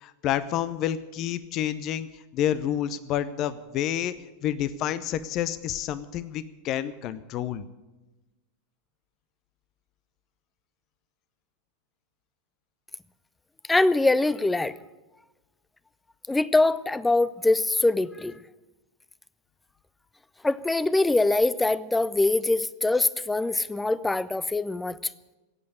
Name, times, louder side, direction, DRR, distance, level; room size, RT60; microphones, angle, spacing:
voice 1, 0.0-2.1 2.3-4.1 4.4-7.6, left 11 dB, 45° left, 14 dB, 0.7 m, -29 dB
voice 2, 13.7-14.8 16.3-18.4 20.4-25.0, left 2 dB, 10° left, 17 dB, 0.6 m, -23 dB
16.0 x 8.6 x 9.6 m, 1.1 s
hypercardioid pair, 90°, 0 cm